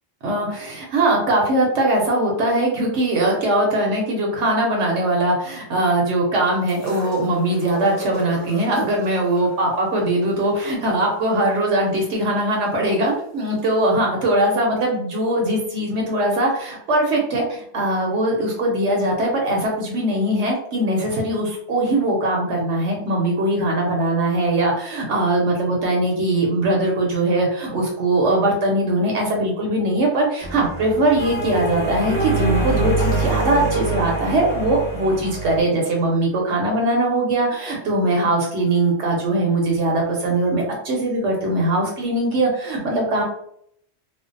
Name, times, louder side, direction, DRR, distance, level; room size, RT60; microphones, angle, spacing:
voice 1, 0.2-43.2, right 1 dB, 70° right, -1 dB, 0.9 m, -21 dB
sound 1, 6.7-12.7 13.6-13.7, left 2 dB, 90° left, 1.1 m, -38 dB
sound 2, 30.4-35.6, right 2 dB, 5° left, 1.0 m, -24 dB
2.5 x 2.1 x 2.5 m, 0.70 s
omnidirectional pair, 1.3 m